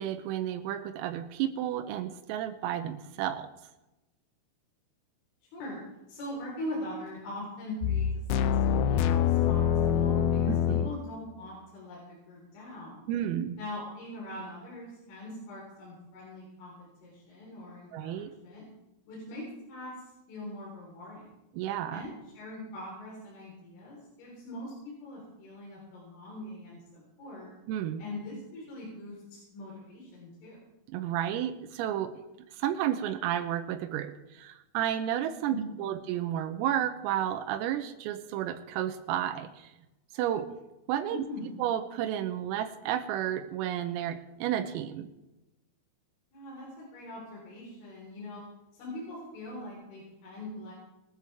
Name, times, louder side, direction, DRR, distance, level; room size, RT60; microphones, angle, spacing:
voice 1, 0.0-3.5 10.5-10.9 13.1-13.6 17.9-18.3 21.6-22.1 27.7-28.0 30.9-32.1 32.6-39.7 40.1-40.5 40.9-41.2 41.6-45.1, right 11 dB, 90° right, 7 dB, 3.6 m, -32 dB
voice 2, 6.1-13.1 13.6-18.6 19.1-19.9 20.3-21.4 21.9-27.5 28.0-30.6 35.5-35.9 41.1-41.5 46.3-48.4 48.8-50.7, left 1 dB, 70° left, -5 dB, 6.6 m, -42 dB
sound 1, 7.8-11.0, left 8 dB, 85° left, 2.4 m, -25 dB
21.5 x 13.0 x 3.5 m, 0.96 s
omnidirectional pair, 5.9 m